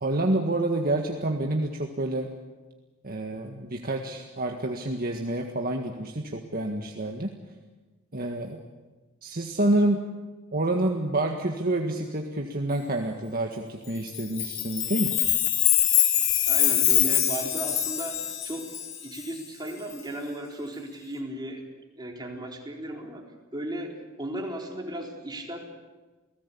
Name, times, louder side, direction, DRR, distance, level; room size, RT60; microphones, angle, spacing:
voice 1, 0.0-2.3 3.0-7.3 8.1-8.6 9.2-10.0 10.5-15.2, right 1 dB, 45° right, 2 dB, 1.8 m, -28 dB
Chime, 14.1-19.2, left 12 dB, 65° left, 2.9 m, -24 dB
voice 2, 16.5-18.7 19.0-21.6 22.0-23.2 23.5-23.9 24.2-25.6, right 1 dB, 20° right, 0 dB, 4.2 m, -35 dB
29.5 x 18.0 x 8.6 m, 1.2 s
head